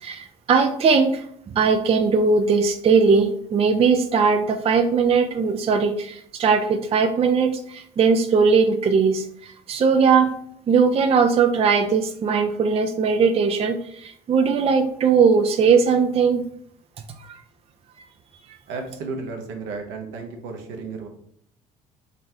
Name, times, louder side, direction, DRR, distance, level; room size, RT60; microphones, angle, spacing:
voice 1, 0.0-1.3 1.5-10.3 10.7-16.4, right 5 dB, 30° right, 6 dB, 0.4 m, -19 dB
voice 2, 18.7-21.1, right 4 dB, 65° right, 3 dB, 0.9 m, -33 dB
4.0 x 3.1 x 2.8 m, 0.66 s
hypercardioid pair, 55°, 20 cm